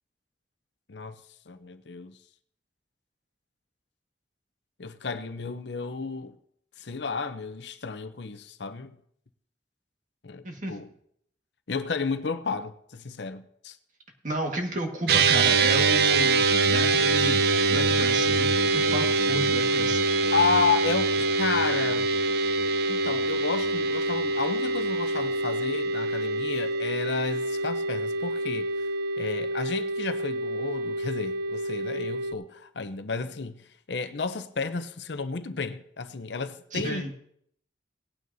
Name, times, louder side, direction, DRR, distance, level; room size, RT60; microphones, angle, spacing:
voice 1, 1.5-2.2 4.8-6.3 6.8-9.0 10.2-10.9 11.7-13.8 20.3-22.1 22.9-28.7 29.2-37.1, left 4 dB, 70° left, 0.7 m, -32 dB
voice 2, 10.4-10.8 14.2-17.4 17.7-20.0 36.7-37.2, right 1 dB, 45° right, 1.8 m, -32 dB
sound 1, 15.1-32.3, right 3 dB, 60° right, 0.6 m, -25 dB
19.0 x 9.3 x 2.7 m
head